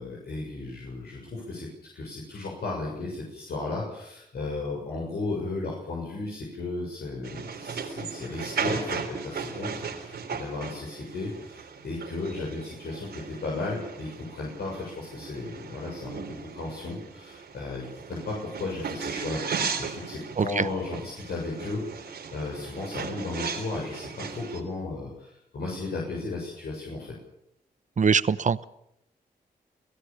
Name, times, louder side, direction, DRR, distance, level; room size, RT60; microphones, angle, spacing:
voice 1, 0.0-1.7 1.9-27.1, left 3 dB, 80° left, -3 dB, 7.1 m, -35 dB
sound 1, 7.2-24.6, right 6 dB, 85° right, 3.6 m, -37 dB
voice 2, 28.0-28.6, right 6 dB, 50° right, 16 dB, 1.0 m, -23 dB
27.5 x 17.0 x 7.1 m, 0.79 s
cardioid pair, 60°, 17 cm